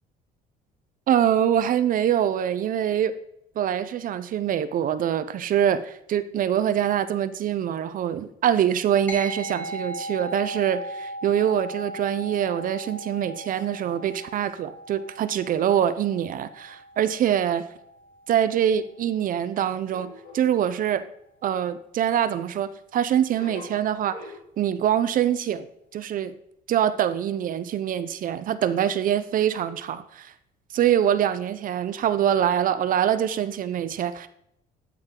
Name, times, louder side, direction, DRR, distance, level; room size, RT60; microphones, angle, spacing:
voice 1, 1.1-3.1 3.6-17.7 18.3-21.1 21.4-24.2 24.6-25.6 25.9-26.4 26.7-30.3 30.7-34.3, right 10 dB, 55° right, 13 dB, 0.6 m, -24 dB
sound 1, 9.1-18.8, right 1 dB, 10° left, 2.0 m, -38 dB
sound 2, 19.9-21.0 23.3-24.4, left 3 dB, 55° left, 2.6 m, -43 dB
12.5 x 6.1 x 3.8 m, 0.78 s
cardioid pair, 110°, 17 cm